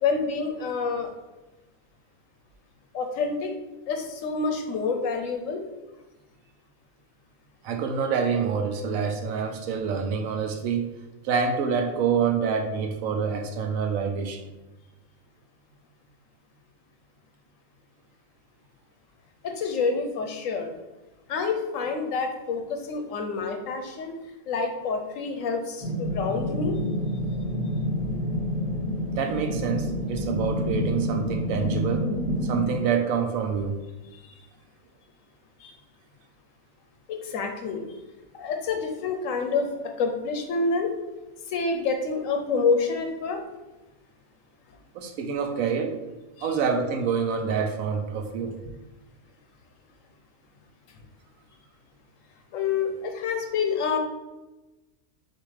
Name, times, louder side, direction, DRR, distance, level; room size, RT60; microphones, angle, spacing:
voice 1, 0.0-1.1 2.9-3.5 3.9-5.6 19.4-20.7 21.3-24.2 24.5-26.8 34.1-34.3 35.6-35.7 37.1-37.8 38.4-39.7 40.0-40.9 41.5-43.4 46.4-46.5 52.5-54.0, left 4 dB, 70° left, 4 dB, 1.0 m, -27 dB
voice 2, 7.6-10.9 11.2-14.4 29.2-32.1 32.5-33.8 44.9-46.0 46.4-48.6, right 6 dB, 80° right, 4 dB, 1.0 m, -27 dB
sound 1, 25.8-32.7, equal, 10° right, 0.8 m, -28 dB
6.5 x 2.5 x 3.2 m, 1.1 s
omnidirectional pair, 1.5 m